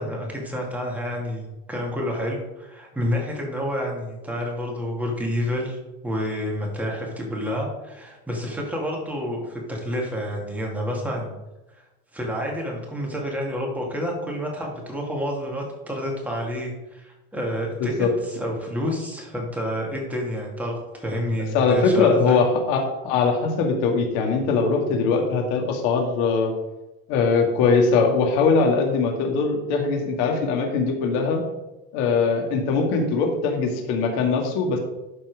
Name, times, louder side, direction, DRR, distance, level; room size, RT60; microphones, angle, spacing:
voice 1, 0.0-11.3 12.1-22.4, equal, 5° right, -2 dB, 2.3 m, -29 dB
voice 2, 17.8-18.1 21.5-26.5 27.1-31.4 31.9-34.8, left 4 dB, 70° left, 2 dB, 2.2 m, -21 dB
12.0 x 4.4 x 4.8 m, 1.0 s
cardioid pair, 145°, 31 cm